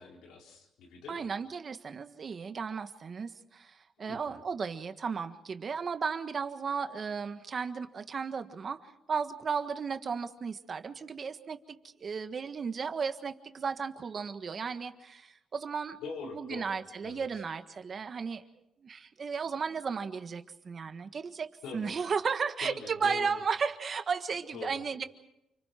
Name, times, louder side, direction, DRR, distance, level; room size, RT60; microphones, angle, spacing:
voice 1, 0.0-1.3 4.0-4.4 16.0-16.7 17.0-17.4 21.6-22.0 22.6-23.4 24.5-24.8, left 4 dB, 90° left, 0 dB, 4.5 m, -43 dB
voice 2, 1.1-16.0 16.3-18.4 18.8-25.0, right 5 dB, 45° right, 9 dB, 1.6 m, -35 dB
29.0 x 26.0 x 4.5 m, 0.84 s
cardioid pair, 90°, 0 cm